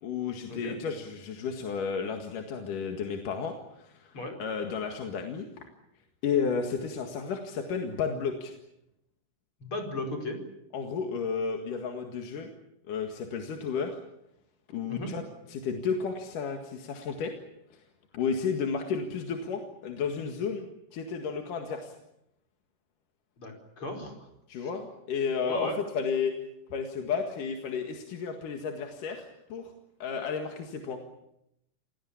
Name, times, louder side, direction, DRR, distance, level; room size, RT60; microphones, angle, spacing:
voice 1, 0.0-5.5 6.2-8.5 10.7-12.5 12.9-14.0 14.7-15.2 15.5-17.3 17.7-17.8 18.1-21.9 24.5-26.3 26.7-29.7 30.0-31.0, left 6 dB, 70° left, 4 dB, 3.4 m, -32 dB
voice 2, 9.6-10.4 14.9-15.1 23.4-24.1 24.6-24.7 25.5-25.8, left 1 dB, 40° left, 3 dB, 5.6 m, -36 dB
28.0 x 19.0 x 8.6 m, 0.82 s
omnidirectional pair, 3.9 m